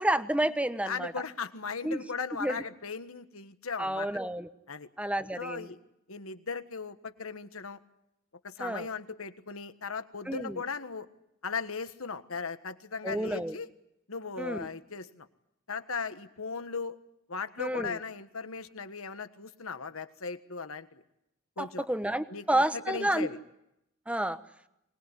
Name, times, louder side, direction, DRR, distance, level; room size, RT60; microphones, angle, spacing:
voice 1, 0.0-1.1 1.8-2.0 2.4-2.6 3.8-4.5 5.0-5.7 8.6-8.9 10.3-10.6 13.0-13.6 14.4-14.7 17.6-18.0 21.6-23.3 24.1-24.4, right 1 dB, 5° right, 11 dB, 1.0 m, -30 dB
voice 2, 0.8-4.1 4.7-4.9 5.4-5.8 6.1-7.8 8.4-11.1 11.4-13.7 14.1-15.3 15.7-17.0 17.3-21.0 21.6-21.8 22.3-23.4, left 5 dB, 80° left, 10 dB, 1.5 m, -37 dB
24.5 x 20.5 x 9.8 m, 0.83 s
head